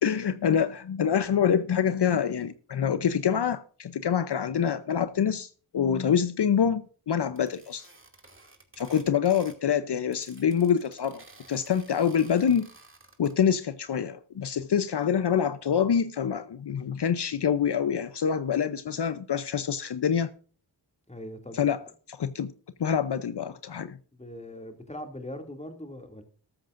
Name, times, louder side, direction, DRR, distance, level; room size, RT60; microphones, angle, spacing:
voice 1, 0.0-7.9 8.8-12.7 13.2-20.3 21.5-21.8 22.1-22.5 22.8-24.0, left 8 dB, 65° left, 0.8 m, -26 dB
sound 1, 7.4-9.7 9.9-13.3, right 2 dB, 30° right, 2.5 m, -53 dB
voice 2, 21.1-21.7 24.1-26.2, left 1 dB, 15° left, 2.5 m, -41 dB
13.5 x 13.5 x 2.6 m
wide cardioid pair, 80°, 43 cm